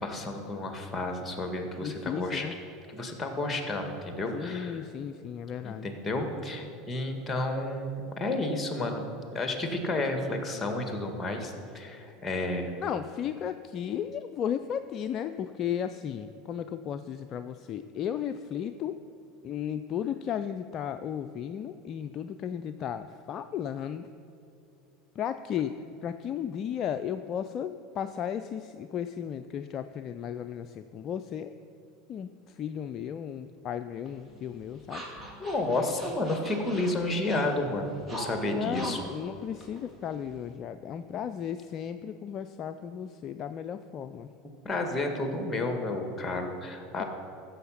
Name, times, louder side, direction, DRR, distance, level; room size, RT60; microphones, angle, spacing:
voice 1, 0.0-2.5 2.9-4.8 5.6-9.0 9.3-12.7 35.4-39.0 44.6-47.0, left 2 dB, 15° left, 4 dB, 1.8 m, -31 dB
voice 2, 1.8-2.5 4.3-5.9 12.8-19.0 19.4-24.1 25.2-25.8 26.0-31.5 32.1-35.0 38.5-44.3, left 9 dB, 40° left, 10 dB, 0.4 m, -35 dB
sound 1, 34.1-40.6, right 1 dB, 15° right, 2.6 m, -44 dB
14.5 x 7.0 x 5.8 m, 2.6 s
hypercardioid pair, 80°, 0 cm